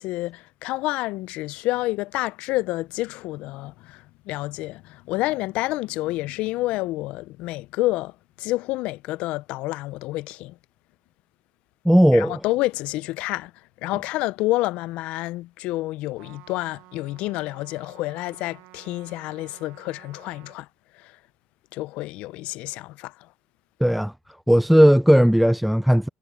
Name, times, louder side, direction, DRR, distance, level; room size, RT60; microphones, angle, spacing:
voice 1, 0.0-8.1 8.4-10.6 12.1-13.5 13.8-20.7 20.9-21.2 21.7-23.3, left 18 dB, 65° left, 0.7 m, -29 dB
voice 2, 11.8-12.4 23.8-24.1 24.5-26.1, equal, ahead, 0.3 m, -16 dB
Trumpet, 16.2-20.6, right 20 dB, 70° right, 1.6 m, -51 dB
hypercardioid pair, 80°, 2 cm